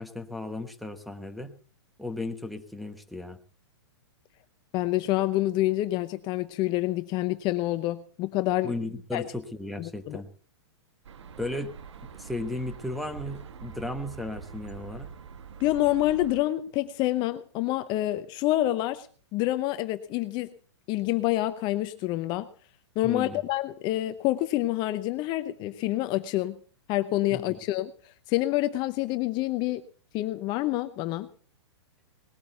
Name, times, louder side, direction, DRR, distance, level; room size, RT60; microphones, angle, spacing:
voice 1, 0.0-1.6 2.0-3.4 8.6-10.3 11.4-11.7 12.0-15.1 23.0-23.4 27.3-27.5, left 2 dB, ahead, 5 dB, 1.1 m, -35 dB
voice 2, 4.7-8.7 9.1-9.2 9.8-10.2 15.6-19.1 19.3-20.5 20.9-22.5 23.0-26.6 26.9-27.9 28.3-29.8 30.1-31.3, left 16 dB, 30° left, 11 dB, 0.8 m, -27 dB
sound 1, 11.0-16.4, right 6 dB, 80° right, 1.4 m, -44 dB
19.5 x 8.5 x 6.9 m, 0.44 s
hypercardioid pair, 145°, 15 cm